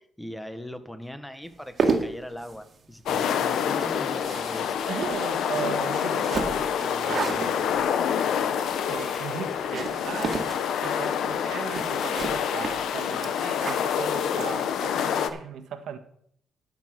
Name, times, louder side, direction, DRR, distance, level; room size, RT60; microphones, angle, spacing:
voice 1, 0.0-4.7, equal, 5° left, 1.4 m, -39 dB
sound 1, 1.5-15.0, right 4 dB, 45° right, 2.0 m, -34 dB
sound 2, 3.1-15.3, left 8 dB, 75° left, 0.9 m, -27 dB
voice 2, 4.9-7.8 8.8-10.5 10.8-16.0, right 7 dB, 75° right, 1.5 m, -37 dB
12.5 x 6.7 x 6.4 m
cardioid pair, 90°, 0 cm